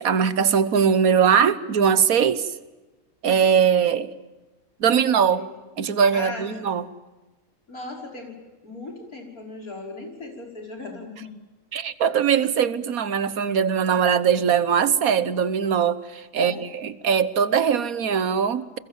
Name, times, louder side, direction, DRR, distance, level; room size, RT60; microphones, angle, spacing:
voice 1, 0.0-2.5 3.2-4.1 4.8-5.4 5.8-6.8 11.7-18.8, right 7 dB, 80° right, 1.6 m, -21 dB
voice 2, 6.1-6.8 7.7-8.4 8.6-11.4 16.3-16.6, left 2 dB, 85° left, 6.1 m, -37 dB
29.5 x 22.0 x 7.4 m
omnidirectional pair, 1.5 m